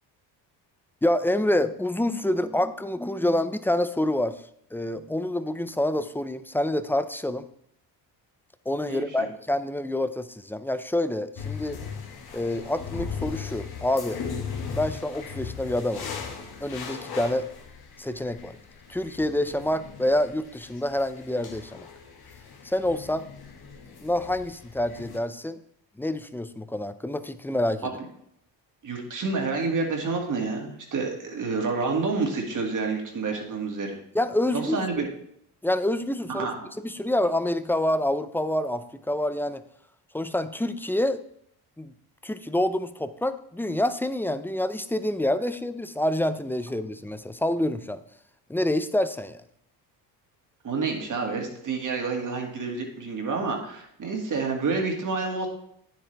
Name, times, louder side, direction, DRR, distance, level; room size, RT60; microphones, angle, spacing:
voice 1, 1.0-4.4 4.7-7.5 8.7-11.8 12.3-14.2 14.8-16.1 16.6-17.5 18.0-18.6 18.9-21.9 22.6-23.3 24.0-25.6 26.0-27.9 34.1-34.8 35.6-36.5 36.8-39.6 40.1-41.2 41.8-41.9 42.2-48.0 48.5-49.4, left 1 dB, 5° left, 13 dB, 0.4 m, -27 dB
voice 2, 8.9-9.3 28.8-34.0 34.5-35.1 36.3-36.6 50.6-55.5, right 4 dB, 45° right, 1 dB, 2.3 m, -29 dB
sound 1, 11.4-25.2, left 6 dB, 55° left, 1.6 m, -38 dB
9.4 x 7.6 x 3.4 m, 0.72 s
supercardioid pair, 80°, 44 cm